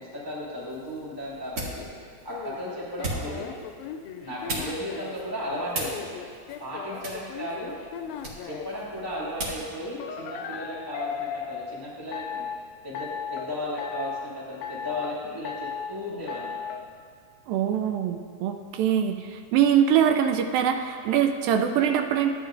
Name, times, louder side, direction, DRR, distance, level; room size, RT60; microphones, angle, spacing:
voice 1, 0.0-1.8 2.2-3.5 4.2-6.1 6.6-7.8 8.4-12.4 12.8-16.6, equal, 20° left, -8 dB, 0.6 m, -35 dB
sound 1, 0.6-9.7, right 2 dB, 50° right, 1.8 m, -39 dB
sound 2, 2.3-5.2 5.8-8.7 10.0-11.7 12.1-12.6 13.0-13.5 13.8-14.3 14.6-15.2 15.5-15.9 16.3-16.8, left 7 dB, 85° left, 2.3 m, -36 dB
voice 2, 17.5-22.3, right 9 dB, 80° right, 5 dB, 2.2 m, -23 dB
13.5 x 9.3 x 2.5 m, 2.1 s
omnidirectional pair, 4.2 m